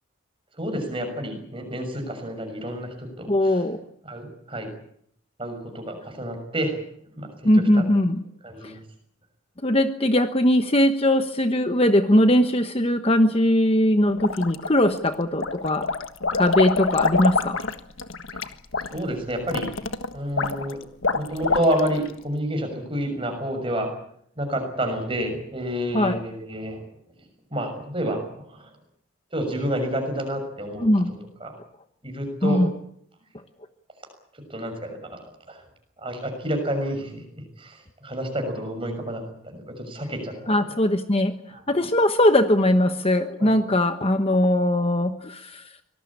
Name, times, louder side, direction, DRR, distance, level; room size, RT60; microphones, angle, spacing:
voice 1, 0.6-3.6 4.0-4.7 5.4-6.8 7.2-7.8 8.4-8.8 18.9-19.7 20.1-20.8 21.1-23.9 24.4-26.8 27.5-28.7 29.3-30.9 31.4-31.5 32.0-32.7 34.5-35.2 35.5-35.6 36.0-37.2 37.6-40.6 41.5-41.6 43.4-43.5, right 1 dB, 25° right, 5 dB, 6.5 m, -29 dB
voice 2, 3.3-3.8 7.4-8.2 8.6-8.7 9.6-15.9 16.3-17.6 25.9-26.2 30.8-31.1 32.4-32.7 40.5-41.3 41.7-45.6, left 1 dB, 25° left, 8 dB, 1.1 m, -20 dB
sound 1, 14.2-15.0 15.4-22.1, left 3 dB, 65° left, 1.5 m, -26 dB
25.0 x 19.0 x 8.7 m, 0.68 s
head